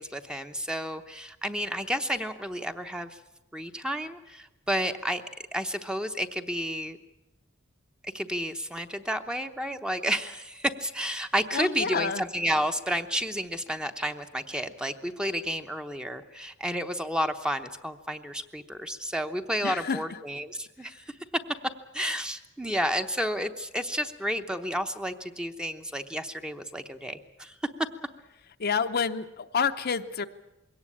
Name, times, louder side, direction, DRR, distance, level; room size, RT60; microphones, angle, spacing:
voice 1, 0.0-3.2 3.5-5.2 5.5-7.0 8.0-21.0 21.9-27.5, equal, 5° right, 7 dB, 0.9 m, -31 dB
voice 2, 11.5-12.2 19.6-20.0 28.6-30.2, left 6 dB, 50° left, 8 dB, 0.7 m, -28 dB
22.0 x 17.5 x 8.6 m, 0.96 s
head